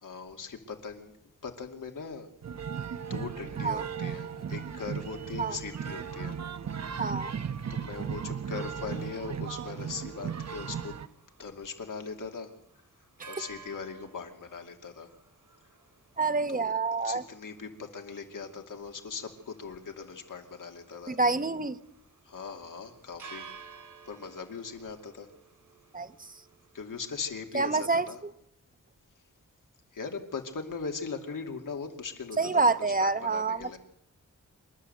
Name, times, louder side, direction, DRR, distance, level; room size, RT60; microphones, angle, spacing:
voice 1, 0.0-1.1 1.4-2.3 3.1-6.4 7.7-11.0 11.4-12.5 13.3-15.1 16.5-16.7 17.0-21.2 22.3-23.5 24.0-25.3 26.7-28.2 29.9-32.4 32.8-33.8, left 5 dB, 85° left, 4 dB, 2.6 m, -40 dB
sound 1, 2.4-11.1, right 7 dB, 55° right, 1.0 m, -36 dB
voice 2, 7.0-7.3 16.2-17.2 21.1-21.8 25.9-26.3 27.5-28.3 32.4-33.8, right 3 dB, 25° right, 12 dB, 0.9 m, -27 dB
sound 2, 10.9-27.4, right 6 dB, 80° right, 4.5 m, -54 dB
27.0 x 12.5 x 8.0 m, 0.80 s
wide cardioid pair, 120°, 31 cm